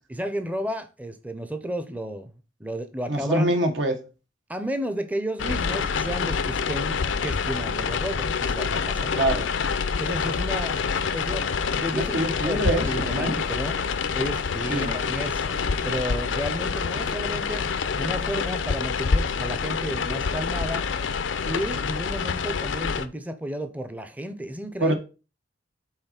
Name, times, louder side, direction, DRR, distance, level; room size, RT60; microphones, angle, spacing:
voice 1, 0.1-2.3 2.6-3.5 4.5-9.3 10.0-10.8 11.1-11.5 11.7-13.8 14.1-17.6 18.0-20.9 21.4-24.9, equal, 10° right, 0.5 m, -32 dB
voice 2, 3.1-4.0 9.1-9.5 11.9-13.3 14.7-14.9 24.8-24.9, right 1 dB, 80° right, 1.4 m, -25 dB
sound 1, 5.4-23.1, left 5 dB, 85° left, 0.5 m, -27 dB
5.7 x 4.0 x 5.8 m
head